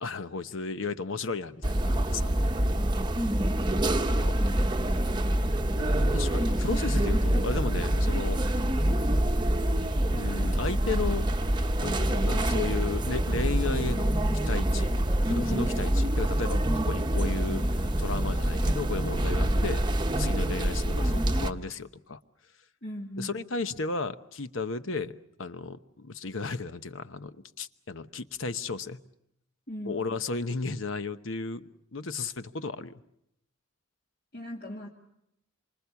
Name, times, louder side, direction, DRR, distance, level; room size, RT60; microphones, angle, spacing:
voice 1, 0.0-2.3 4.1-4.4 6.1-8.4 10.1-11.3 11.8-14.9 15.2-19.9 20.2-22.2 23.2-29.0 29.8-33.0, left 3 dB, 70° left, 11 dB, 1.0 m, -34 dB
sound 1, 1.6-21.5, right 1 dB, 20° right, 0.9 m, -26 dB
voice 2, 5.6-6.2 22.8-23.4 29.7-30.0 34.3-34.9, equal, 50° left, -1 dB, 2.1 m, -39 dB
27.0 x 25.0 x 7.0 m, 0.79 s
head